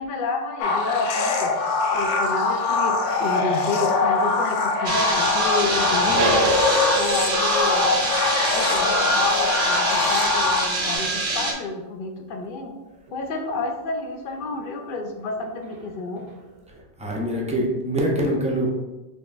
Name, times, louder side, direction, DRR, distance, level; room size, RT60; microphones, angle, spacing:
voice 1, 0.0-1.5 1.9-6.5 7.0-7.9 8.5-12.7 13.1-16.2, left 3 dB, 55° left, 3 dB, 0.7 m, -29 dB
sound 1, 0.6-11.0, left 3 dB, 90° left, 0.9 m, -23 dB
sound 2, 4.8-11.5, right 2 dB, 40° right, 0.8 m, -26 dB
sound 3, 5.6-12.0 13.4-13.5, left 1 dB, 80° right, 1.0 m, -27 dB
voice 2, 17.0-18.7, right 1 dB, 10° right, -2 dB, 0.5 m, -24 dB
5.2 x 3.0 x 2.5 m, 1.1 s
omnidirectional pair, 1.2 m